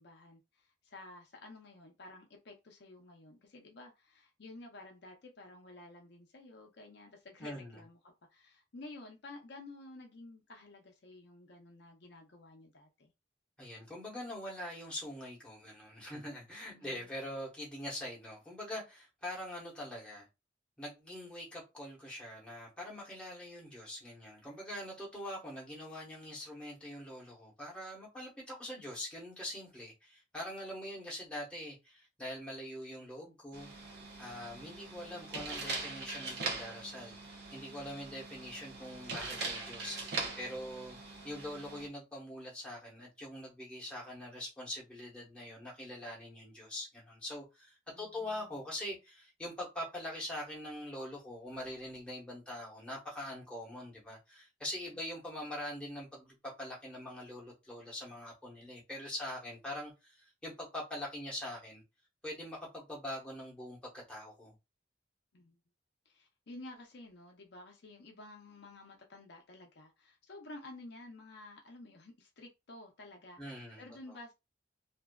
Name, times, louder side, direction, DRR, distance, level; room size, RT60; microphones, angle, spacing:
voice 1, 0.0-13.1 16.7-17.1 47.9-48.5 65.3-65.6 66.1-74.3, left 2 dB, 60° left, 0.6 m, -52 dB
voice 2, 7.4-7.8 13.6-20.3 20.8-41.0 41.2-61.8 62.2-64.5 73.4-74.2, left 1 dB, 5° left, 1.0 m, -43 dB
sound 1, 33.5-41.9, right 3 dB, 60° right, 0.6 m, -42 dB
2.5 x 2.3 x 2.2 m
head